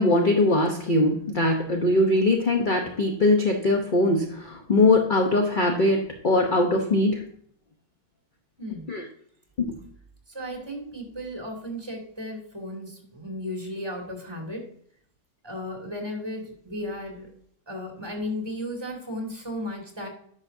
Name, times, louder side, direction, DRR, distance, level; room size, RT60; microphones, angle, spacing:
voice 1, 0.0-7.2 8.9-9.0 9.6-9.8, left 2 dB, 45° left, 3 dB, 0.6 m, -21 dB
voice 2, 8.6-8.9 10.3-14.6 15.4-17.3 17.7-20.1, left 1 dB, 15° right, 0 dB, 2.2 m, -35 dB
10.5 x 6.1 x 2.6 m, 0.63 s
omnidirectional pair, 2.0 m